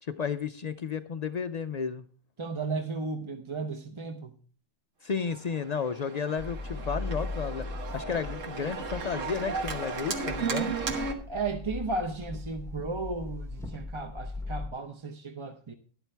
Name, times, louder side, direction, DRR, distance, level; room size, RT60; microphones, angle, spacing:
voice 1, 0.0-2.0 5.0-7.6 7.9-10.7, left 6 dB, 80° left, 0.3 m, -32 dB
voice 2, 2.4-4.4 11.3-15.7, right 3 dB, 30° right, 0.6 m, -34 dB
Organ, 5.3-11.1, right 5 dB, 70° right, 1.6 m, -35 dB
sound 1, 6.4-14.7, left 3 dB, ahead, 0.8 m, -39 dB
11.5 x 11.0 x 3.3 m
omnidirectional pair, 1.4 m